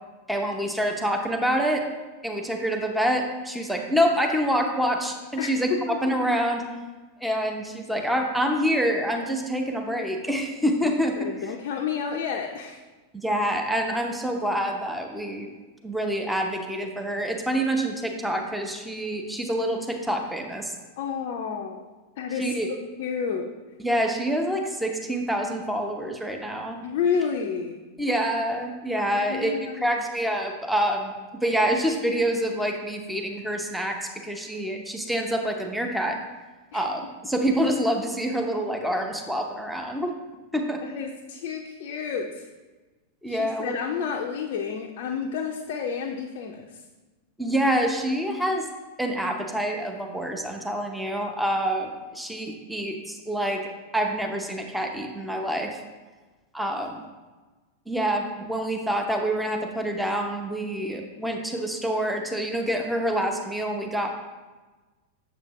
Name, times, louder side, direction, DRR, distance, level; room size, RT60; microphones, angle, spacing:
voice 1, 0.3-1.8 2.2-5.7 6.0-6.6 7.2-11.2 13.1-15.5 15.8-20.7 22.4-22.7 23.8-26.8 28.0-31.1 31.4-36.2 36.7-40.1 40.5-40.8 43.2-43.8 47.4-48.7 49.0-55.8 56.5-57.0 57.9-64.1, equal, ahead, 2 dB, 0.7 m, -26 dB
voice 2, 5.4-6.0 11.2-12.8 21.0-21.8 22.2-22.5 23.0-23.5 26.8-27.8 29.1-30.0 36.7-36.8 40.8-42.5 43.3-46.8, left 6 dB, 50° left, 2 dB, 0.5 m, -30 dB
7.4 x 7.2 x 2.9 m, 1.2 s
figure-of-eight pair, 90°, 0 cm